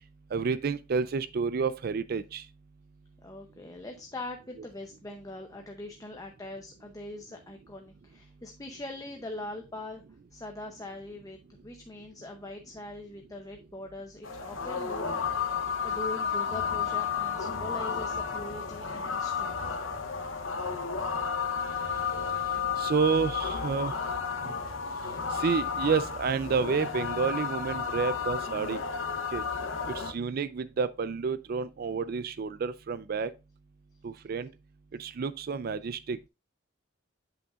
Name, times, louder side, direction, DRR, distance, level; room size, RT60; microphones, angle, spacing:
voice 1, 0.3-2.4 22.8-23.9 24.4-24.5 25.3-28.8 29.3-29.4 29.9-33.3 34.0-34.5 35.0-36.2, right 5 dB, 50° right, 0.4 m, -30 dB
voice 2, 3.2-10.0 10.3-15.2 15.5-19.6, left 2 dB, 20° left, 0.7 m, -42 dB
sound 1, 14.2-30.1, left 6 dB, 80° left, 0.8 m, -32 dB
7.9 x 5.8 x 2.4 m
head